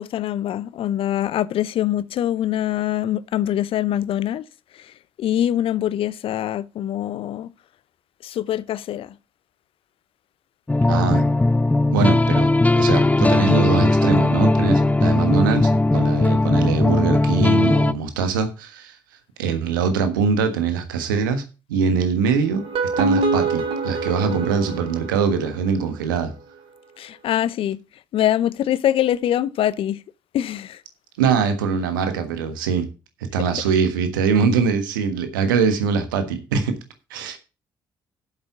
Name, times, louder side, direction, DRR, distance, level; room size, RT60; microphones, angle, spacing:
voice 1, 0.0-4.4 4.7-4.9 5.2-7.5 8.2-9.1 27.0-27.8 28.1-30.0 30.3-30.8, left 11 dB, 60° left, 0.6 m, -23 dB
sound 1, 10.7-17.9, left 2 dB, 15° left, 0.7 m, -18 dB
voice 2, 10.9-11.2 11.9-12.5 12.8-19.0 19.4-21.4 21.7-22.6 23.0-26.3 31.2-32.9 33.3-36.8 37.1-37.4, right 6 dB, 80° right, 1.4 m, -22 dB
sound 2, 22.5-25.7, right 3 dB, 60° right, 2.3 m, -25 dB
8.1 x 7.5 x 6.0 m
hypercardioid pair, 45°, 11 cm